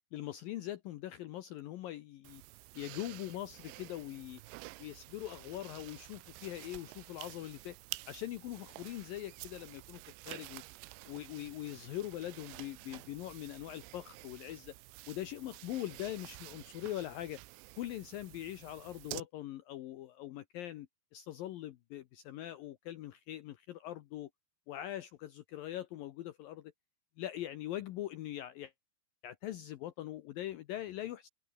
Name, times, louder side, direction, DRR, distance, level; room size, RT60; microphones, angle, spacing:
voice 1, 0.1-2.4 2.8-4.4 4.8-7.8 8.1-10.0 10.3-10.6 11.1-14.7 15.1-17.4 17.8-20.9 21.1-24.3 24.7-26.7 27.2-28.7 29.2-31.3, left 13 dB, 80° left, 2.0 m, -42 dB
sound 1, 2.2-19.2, right 21 dB, 80° right, 2.9 m, -50 dB
open air
omnidirectional pair, 5.3 m